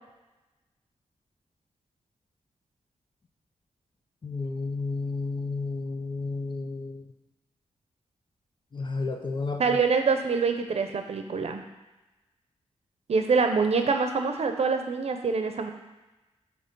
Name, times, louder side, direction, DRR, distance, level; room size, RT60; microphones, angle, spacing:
voice 1, 4.2-7.0 8.7-9.8, left 3 dB, 40° left, 5 dB, 0.7 m, -32 dB
voice 2, 9.6-11.6 13.1-15.7, right 4 dB, 60° right, 6 dB, 0.7 m, -25 dB
7.4 x 3.0 x 5.3 m, 1.1 s
wide cardioid pair, 80°, 12 cm